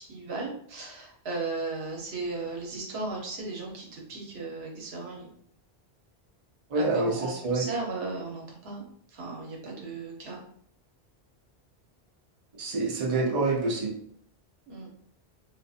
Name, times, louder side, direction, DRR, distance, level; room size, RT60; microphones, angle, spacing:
voice 1, 0.0-5.3 6.7-8.8 9.1-10.4 14.7-14.9, right 3 dB, 75° right, 0 dB, 1.0 m, -36 dB
voice 2, 6.7-7.6 12.6-13.9, right 3 dB, 40° right, -2 dB, 0.6 m, -27 dB
2.5 x 2.5 x 2.3 m, 0.65 s
omnidirectional pair, 1.1 m